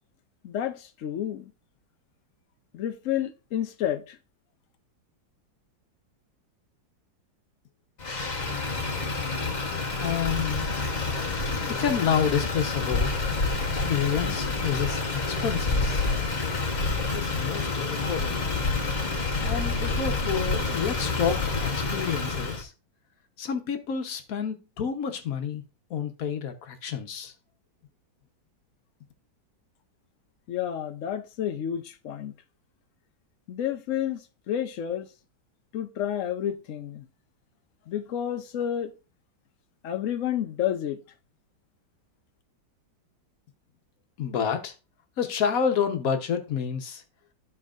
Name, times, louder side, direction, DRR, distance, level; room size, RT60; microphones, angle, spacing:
voice 1, 0.4-1.5 2.7-4.2 30.5-32.3 33.5-34.2 34.5-35.1 35.7-37.1 37.9-38.9 39.8-41.0, left 10 dB, 75° left, 0.7 m, -30 dB
Motor vehicle (road), 8.0-22.6, left 3 dB, 30° left, 0.8 m, -28 dB
voice 2, 10.0-10.7 11.6-13.1 13.6-16.1 17.1-18.6 19.4-22.7 23.4-25.6 25.9-27.3 44.2-44.7 45.2-47.0, left 7 dB, 55° left, 1.2 m, -29 dB
13.0 x 4.5 x 2.4 m
omnidirectional pair, 2.1 m